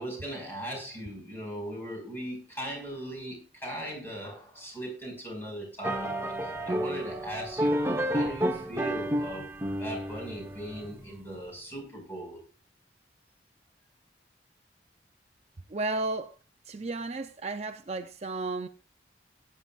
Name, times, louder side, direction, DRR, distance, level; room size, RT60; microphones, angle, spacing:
voice 1, 0.0-7.8 8.1-9.5 9.8-12.4, right 1 dB, 10° left, 5.1 m, -39 dB
sound 1, 5.8-11.1, equal, 15° right, 1.0 m, -31 dB
voice 2, 15.7-16.4 16.7-18.7, right 2 dB, 35° right, 0.5 m, -33 dB
18.0 x 9.6 x 2.4 m
head